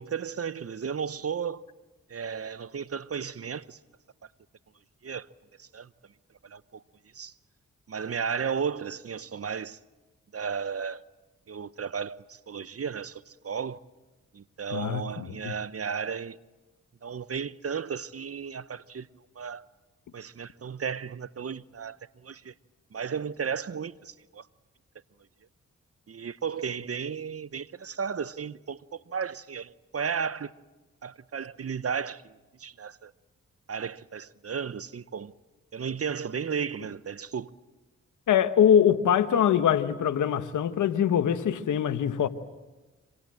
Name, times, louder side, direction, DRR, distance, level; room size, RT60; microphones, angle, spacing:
voice 1, 0.0-1.6 2.1-3.8 5.0-5.3 5.6-5.9 6.4-6.8 7.1-7.3 7.9-9.8 10.3-11.0 11.5-13.8 14.3-16.4 17.0-19.1 19.3-19.6 20.1-22.5 22.9-24.5 26.1-30.5 31.0-33.1 33.7-35.3 35.7-37.5, right 6 dB, 50° right, 1.0 m, -34 dB
voice 2, 14.7-15.5 38.3-42.3, left 9 dB, 85° left, 1.2 m, -23 dB
26.5 x 26.0 x 7.7 m
supercardioid pair, 40°, 30 cm